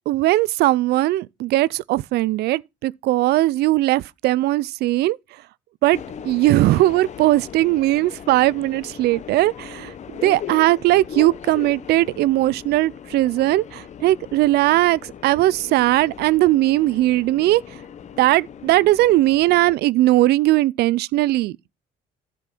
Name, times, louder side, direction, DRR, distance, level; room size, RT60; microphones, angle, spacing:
voice 1, 0.1-5.2 5.8-6.0 6.2-17.6 18.2-21.6, right 16 dB, 75° right, 0.5 m, -19 dB
Subway metro underground, 5.9-19.7, left 8 dB, 45° left, 0.8 m, -38 dB
10.5 x 5.3 x 5.9 m
cardioid pair, 110°, 17 cm